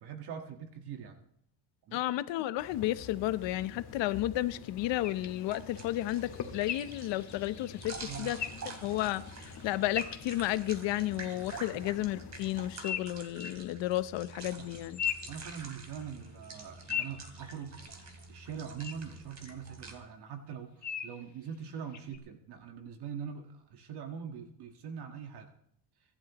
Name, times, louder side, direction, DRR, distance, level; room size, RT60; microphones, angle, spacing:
voice 1, 0.0-1.2 1.9-2.0 7.8-8.3 11.5-11.8 14.6-14.7 15.3-17.7 18.3-25.5, right 7 dB, 60° right, 1.7 m, -43 dB
voice 2, 1.9-8.4 8.8-15.0, left 15 dB, 75° left, 0.9 m, -32 dB
sound 1, 2.6-12.7, left 7 dB, 55° left, 2.1 m, -48 dB
sound 2, 5.0-10.9 12.8-13.6 14.6-16.1 16.4-18.1 18.8-18.9 19.4-19.5 20.8-21.2 21.9-22.2, left 8 dB, 40° left, 1.3 m, -40 dB
sound 3, 5.5-20.0, right 3 dB, 40° right, 2.9 m, -48 dB
24.5 x 12.0 x 3.0 m
cardioid pair, 125°, 44 cm